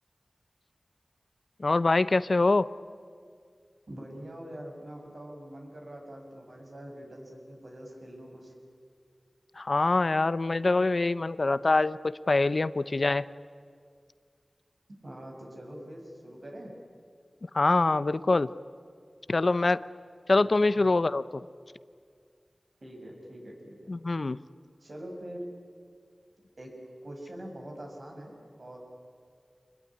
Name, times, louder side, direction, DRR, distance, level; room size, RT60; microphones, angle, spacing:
voice 1, 1.6-2.7 9.6-13.3 17.5-18.5 19.3-19.8 20.3-21.2 23.9-24.4, left 3 dB, 60° left, 16 dB, 0.6 m, -24 dB
voice 2, 3.9-8.5 15.0-16.7 20.4-20.5 20.8-20.9 22.8-23.9 24.8-25.5 26.6-26.7 27.0-28.8, right 1 dB, 60° right, 1 dB, 6.7 m, -44 dB
26.0 x 21.5 x 9.9 m, 2.1 s
wide cardioid pair, 55°, 0 cm